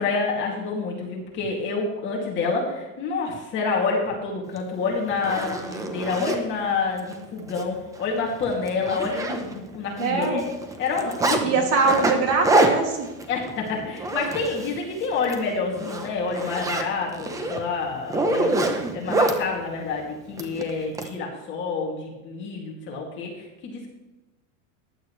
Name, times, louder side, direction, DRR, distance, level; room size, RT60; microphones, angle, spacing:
voice 1, 0.0-10.4 10.8-11.6 13.3-23.9, left 4 dB, 30° left, -1 dB, 2.5 m, -28 dB
Zipper (clothing), 4.6-4.7 5.1-6.4 7.0-7.1 7.5-7.6 8.0-8.1 8.4-9.8 10.0-11.4 11.8-14.8 15.1-15.4 15.8-19.4 20.4-21.1, right 2 dB, 10° right, 0.7 m, -25 dB
voice 2, 10.0-10.4 11.4-13.1, right 4 dB, 35° right, 2 dB, 2.5 m, -22 dB
15.0 x 10.5 x 3.2 m, 1.1 s
supercardioid pair, 165°, 40 cm